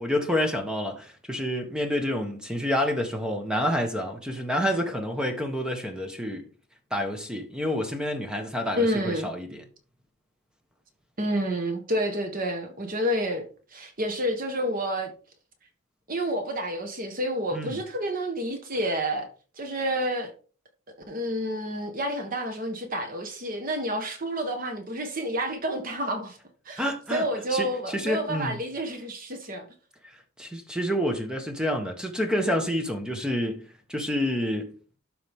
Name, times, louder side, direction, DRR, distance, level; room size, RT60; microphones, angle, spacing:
voice 1, 0.0-6.4 6.9-9.6 17.5-17.8 26.8-27.2 27.5-28.6 30.0-34.7, equal, 5° right, 1.3 m, -28 dB
voice 2, 8.7-9.3 11.2-13.4 13.7-15.1 16.1-19.3 19.6-20.3 21.1-26.4 26.6-26.8 27.1-29.7, equal, 40° right, 1.3 m, -29 dB
12.0 x 4.8 x 3.6 m
head